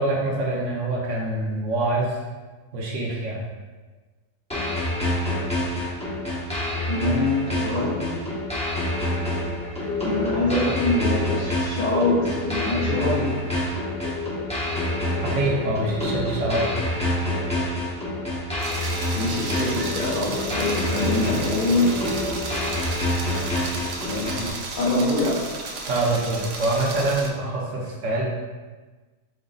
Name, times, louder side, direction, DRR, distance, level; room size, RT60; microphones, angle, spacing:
voice 1, 0.0-2.2 2.7-3.4 15.2-16.7 25.9-28.2, right 2 dB, 65° right, -2 dB, 0.9 m, -25 dB
sound 1, 4.5-24.5, left 1 dB, 10° left, 0.4 m, -27 dB
voice 2, 6.9-8.2 10.0-13.4 19.1-22.0 24.0-25.5, left 2 dB, 60° left, -6 dB, 0.5 m, -24 dB
sound 2, 9.9-10.4 10.8-18.3 18.6-18.7 19.0-19.1 19.4-21.6, left 7 dB, 80° left, 1.2 m, -34 dB
sound 3, 18.6-27.3, right 3 dB, 85° right, 1.1 m, -34 dB
5.3 x 2.0 x 3.8 m, 1.3 s
omnidirectional pair, 1.6 m